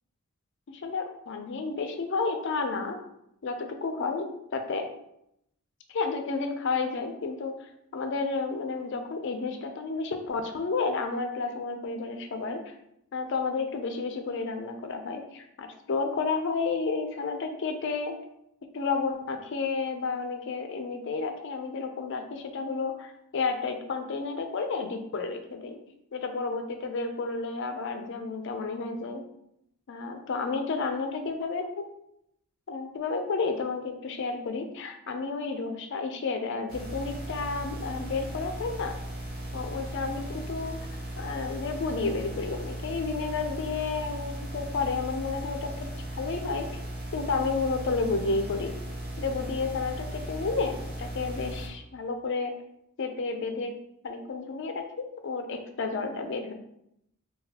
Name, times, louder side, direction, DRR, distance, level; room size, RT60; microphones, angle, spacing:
voice 1, 0.7-3.0 3.4-4.9 5.9-7.6 7.9-12.7 13.1-18.2 18.7-25.8 26.1-29.2 29.9-31.8 32.7-38.9 39.5-40.8 41.2-46.7 47.1-48.7 49.2-52.5 53.0-53.7 54.0-56.5, left 4 dB, 55° left, 5 dB, 0.4 m, -31 dB
sound 1, 36.7-51.7, right 1 dB, 45° right, 0.7 m, -37 dB
3.9 x 2.3 x 2.8 m, 0.78 s
head